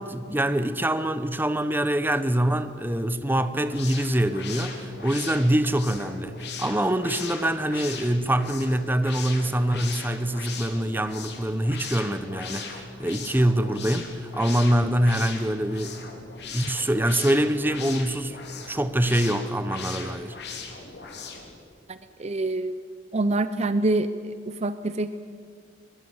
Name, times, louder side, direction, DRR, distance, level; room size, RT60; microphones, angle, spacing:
voice 1, 0.0-16.0 16.5-18.4 18.7-20.4, right 1 dB, 10° right, 1.0 m, -24 dB
sound 1, 3.5-21.6, left 5 dB, 65° left, 3.6 m, -39 dB
voice 2, 21.9-22.7 23.1-24.1 24.5-25.1, right 2 dB, 40° right, 0.7 m, -25 dB
23.0 x 23.0 x 8.0 m
head